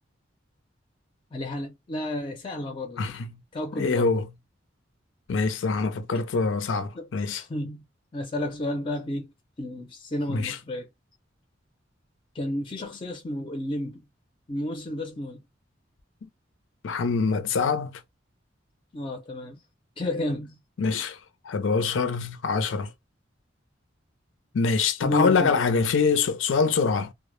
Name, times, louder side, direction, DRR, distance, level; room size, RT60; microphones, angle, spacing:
voice 1, 1.3-3.1 3.5-4.1 6.1-6.3 6.9-7.8 8.1-9.3 9.6-10.9 12.3-14.1 14.5-15.4 18.9-19.6 20.0-20.6 25.0-25.6, left 1 dB, 25° left, 0.4 m, -32 dB
voice 2, 3.0-3.3 3.8-4.3 5.3-7.4 10.3-10.6 16.8-18.0 20.8-21.2 21.4-22.9 24.5-27.1, left 4 dB, 80° left, 0.4 m, -24 dB
2.0 x 2.0 x 3.0 m
head